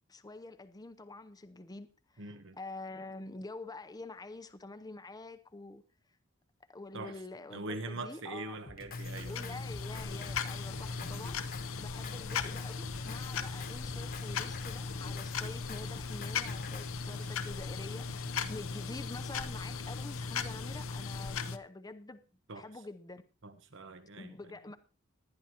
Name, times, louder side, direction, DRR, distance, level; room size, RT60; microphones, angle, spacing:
voice 1, 0.1-5.8 6.7-8.6 9.3-11.4 11.8-22.2 22.5-23.2 24.2-24.8, left 2 dB, 20° left, 0.7 m, -47 dB
voice 2, 2.2-2.6 6.9-7.1 7.5-9.6 10.7-11.3 17.1-17.3 18.4-18.5 22.5-22.6 23.4-24.3, right 2 dB, 60° right, 1.1 m, -43 dB
Drum kit, 8.6-17.0, left 4 dB, 45° left, 1.2 m, -49 dB
sound 1, 8.9-21.6, left 5 dB, 75° left, 0.8 m, -38 dB
19.5 x 11.0 x 2.9 m
head